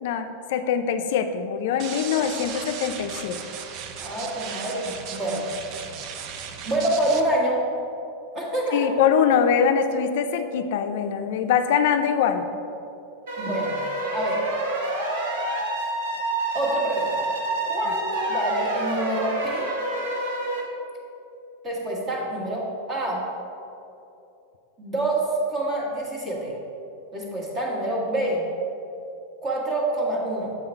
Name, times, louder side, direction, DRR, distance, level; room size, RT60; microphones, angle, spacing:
voice 1, 0.0-3.4 8.7-12.5, left 7 dB, 65° left, 8 dB, 0.3 m, -23 dB
sound 1, 1.8-7.2, right 7 dB, 40° right, 0.4 m, -36 dB
voice 2, 4.0-5.5 6.6-7.6 8.3-8.9 13.4-13.8 14.1-14.4 16.5-17.3 17.6-19.7 21.6-23.2 24.8-26.5 27.1-28.4 29.4-30.6, right 1 dB, 25° right, -3 dB, 1.4 m, -26 dB
sound 2, 13.3-20.6, right 2 dB, 80° right, 1.1 m, -28 dB
7.2 x 3.9 x 4.3 m, 2.8 s
supercardioid pair, 155°, 0 cm